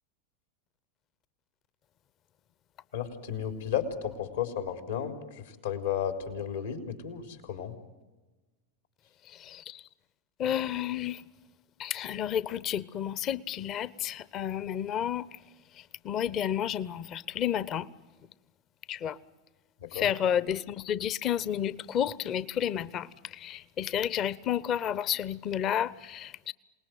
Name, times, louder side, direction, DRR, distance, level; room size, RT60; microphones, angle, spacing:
voice 1, 2.9-7.8 19.8-20.1, left 9 dB, 80° left, 3.6 m, -33 dB
voice 2, 9.2-9.8 10.4-11.2 11.8-15.4 15.7-17.9 18.9-19.2 19.9-26.5, left 10 dB, 40° left, 0.7 m, -31 dB
27.5 x 19.5 x 9.3 m
hypercardioid pair, 95°, 0 cm